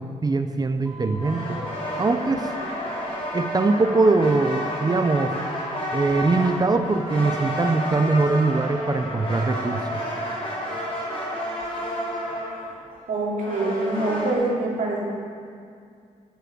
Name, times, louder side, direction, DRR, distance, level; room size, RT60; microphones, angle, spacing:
voice 1, 0.0-1.6 2.0-2.5 3.3-5.4 5.9-10.0, right 3 dB, 30° right, 7 dB, 0.7 m, -22 dB
sound 1, 0.8-3.3 3.5-4.6 5.0-6.0 6.2-7.3 7.7-8.7 8.9-10.2 10.7-12.7, equal, 5° right, 3.5 m, -41 dB
sound 2, 1.2-14.3, equal, 40° left, 3.7 m, -31 dB
voice 2, 13.1-15.0, right 2 dB, 70° right, -4 dB, 2.8 m, -25 dB
10.5 x 8.1 x 7.6 m, 2.3 s
cardioid pair, 110°, 14 cm